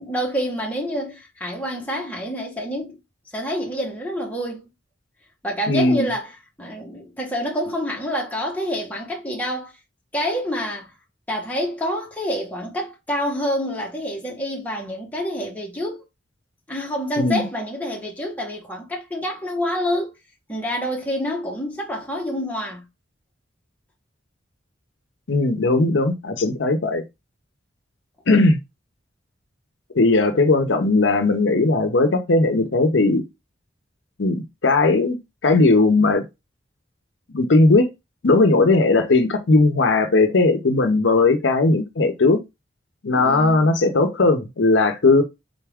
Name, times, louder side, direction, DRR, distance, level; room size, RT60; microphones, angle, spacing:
voice 1, 0.0-3.0 3.3-4.7 5.4-9.7 10.1-10.9 11.3-16.0 16.7-20.1 20.5-22.8 43.1-43.7, equal, 10° left, 1.1 m, -27 dB
voice 2, 5.7-6.1 17.2-17.5 25.3-27.0 28.3-28.6 29.9-33.2 34.2-35.2 35.4-36.2 37.3-37.9 38.2-42.4 43.0-45.2, left 3 dB, 70° left, 0.7 m, -18 dB
3.9 x 3.5 x 3.5 m
head